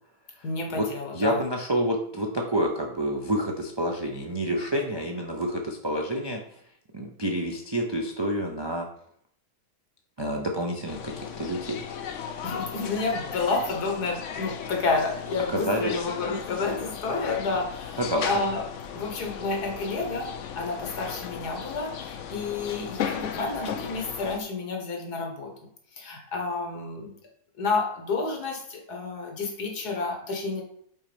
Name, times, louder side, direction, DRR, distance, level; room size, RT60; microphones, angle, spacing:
voice 1, 0.4-1.4 12.4-18.6 18.9-25.5 25.9-27.1 27.6-30.6, left 3 dB, 80° left, 2 dB, 1.9 m, -30 dB
voice 2, 1.1-6.4 6.9-8.9 10.2-11.8 12.3-12.4 15.5-16.0 18.0-18.3, equal, 45° right, 1 dB, 0.3 m, -28 dB
sound 1, 10.9-24.4, left 8 dB, 60° left, 0.8 m, -36 dB
5.6 x 4.3 x 5.1 m, 0.66 s
omnidirectional pair, 1.7 m